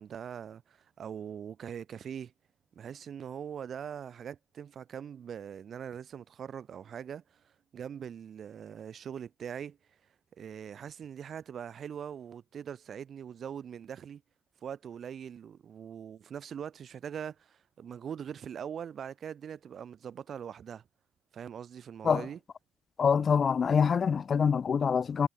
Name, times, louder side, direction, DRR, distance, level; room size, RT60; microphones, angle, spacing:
voice 1, 0.0-2.3 2.7-9.8 10.4-14.2 14.6-20.8 21.3-22.4, right 8 dB, 55° right, 2.6 m, -42 dB
voice 2, 23.0-25.3, left 6 dB, 45° left, 0.3 m, -25 dB
cardioid pair, 90°, 0 cm